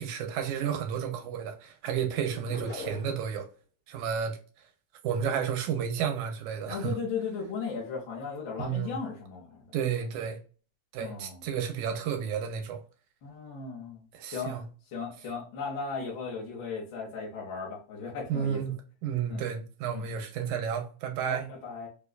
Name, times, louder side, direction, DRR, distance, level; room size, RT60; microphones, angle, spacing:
voice 1, 0.0-3.5 3.9-4.4 5.0-6.9 8.6-9.0 9.7-10.4 10.9-12.8 14.1-14.6 18.3-18.8 19.0-21.5, right 8 dB, 85° right, 2.1 m, -31 dB
sound 1, 2.5-3.4, left 1 dB, 10° left, 0.4 m, -40 dB
voice 2, 6.7-9.7 11.0-11.5 13.2-14.6 14.9-18.7 19.3-19.4 19.9-20.1 21.3-21.9, left 5 dB, 60° left, 1.3 m, -36 dB
4.8 x 2.2 x 2.3 m
omnidirectional pair, 3.4 m